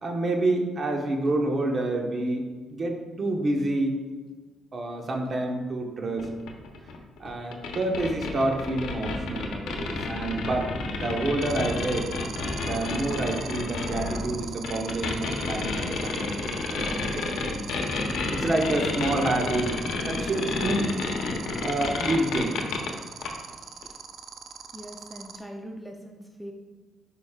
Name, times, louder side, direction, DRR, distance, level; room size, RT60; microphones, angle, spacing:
voice 1, 0.0-4.0 4.7-6.3 7.2-10.7 11.0-12.1 12.6-17.6 18.3-19.7 20.0-20.9 21.6-22.6, right 2 dB, 40° right, 2 dB, 1.1 m, -28 dB
sound 1, 6.2-22.9 23.2-23.3 23.8-23.9, left 3 dB, 85° left, 0.8 m, -30 dB
sound 2, 11.4-25.4, right 7 dB, 65° right, 0.5 m, -40 dB
voice 2, 24.7-26.5, equal, ahead, 2 dB, 0.6 m, -41 dB
9.6 x 5.1 x 2.4 m, 1.4 s
cardioid pair, 90°, 0 cm